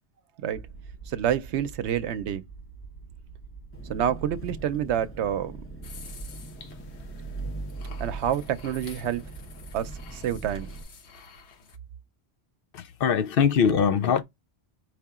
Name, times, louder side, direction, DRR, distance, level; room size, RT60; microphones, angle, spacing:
sound 1, 0.5-6.7, right 5 dB, 45° left, 1.5 m, -46 dB
voice 1, 1.1-2.4 3.9-5.6 8.0-9.2 9.7-10.7, right 10 dB, 90° right, 0.9 m, -28 dB
Engine, 3.7-10.8, right 3 dB, 15° left, 0.7 m, -39 dB
sound 2, 5.8-11.8, left 4 dB, 85° left, 1.1 m, -48 dB
voice 2, 12.7-14.2, left 7 dB, 65° left, 0.7 m, -22 dB
4.8 x 2.8 x 3.6 m
omnidirectional pair, 1.1 m